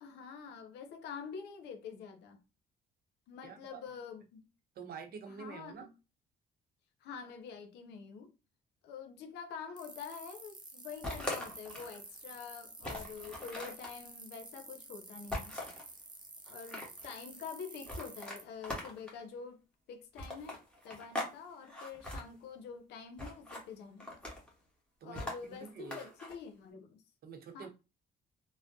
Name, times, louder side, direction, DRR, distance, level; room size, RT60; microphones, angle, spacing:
voice 1, 0.0-2.4 3.3-4.5 5.3-5.9 7.0-8.3 8.8-15.6 16.5-19.6 19.9-24.2 25.0-27.0 27.5-27.7, left 6 dB, 85° left, 0.7 m, -47 dB
voice 2, 3.4-3.8 4.8-5.9 25.0-25.2 25.5-26.1 27.2-27.7, right 6 dB, 60° right, 0.7 m, -47 dB
sound 1, 9.8-18.4, right 3 dB, 25° right, 0.9 m, -50 dB
sound 2, 11.0-12.0 12.4-12.5 12.8-13.9 15.3-15.9 16.5-17.1 17.8-19.2 20.2-21.3 21.6-22.2 23.2-23.6 24.0-24.5 25.1-26.3, left 1 dB, 5° left, 1.2 m, -41 dB
3.4 x 2.1 x 2.6 m
cardioid pair, 90°, 17 cm